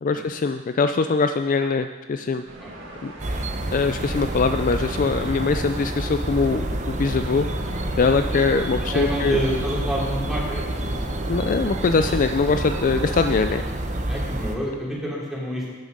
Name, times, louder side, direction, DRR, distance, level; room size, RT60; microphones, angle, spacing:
voice 1, 0.0-2.4 3.0-3.1 3.7-7.5 8.0-9.4 11.3-13.6, left 4 dB, 40° left, 9 dB, 0.4 m, -22 dB
sound 1, 2.5-13.3, right 1 dB, 65° right, 2.1 m, -41 dB
sound 2, 3.2-14.6, right 1 dB, 35° right, 0.9 m, -28 dB
voice 2, 8.7-11.2 14.1-15.8, equal, ahead, -5 dB, 3.1 m, -28 dB
12.5 x 9.4 x 5.3 m, 1.3 s
head